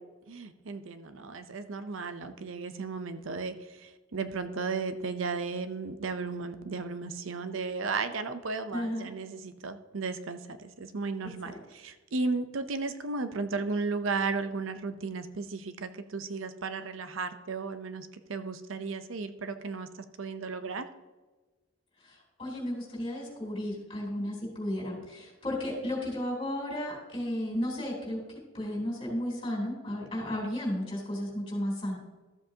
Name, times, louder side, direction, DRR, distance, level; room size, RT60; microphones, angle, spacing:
voice 1, 0.3-20.9, right 4 dB, 75° right, 11 dB, 0.6 m, -35 dB
voice 2, 8.7-9.1 11.4-11.6 22.0-28.2 28.5-32.0, left 1 dB, 25° left, -2 dB, 3.5 m, -33 dB
13.5 x 7.7 x 2.8 m, 1.2 s
head